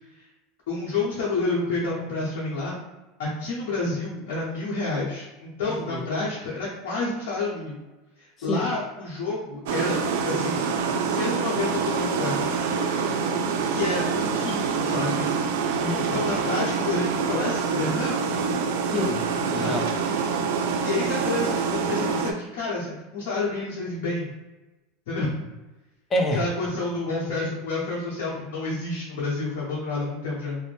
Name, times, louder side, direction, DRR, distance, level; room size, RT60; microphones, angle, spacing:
voice 1, 0.7-2.7 3.2-7.8 8.2-10.0 10.2-10.7 11.1-12.6 13.7-15.4 16.1-18.2 19.6-19.7 20.8-24.3 25.1-25.4 26.3-30.6, left 3 dB, 75° left, -6 dB, 0.8 m, -29 dB
voice 2, 5.7-6.1 8.5-8.7 15.7-16.2 18.9-19.9 26.1-26.4, left 1 dB, 25° left, 2 dB, 0.5 m, -28 dB
sound 1, 9.7-22.3, right 5 dB, 75° right, 0.3 m, -26 dB
2.5 x 2.0 x 3.2 m, 1.1 s
supercardioid pair, 105°, 0 cm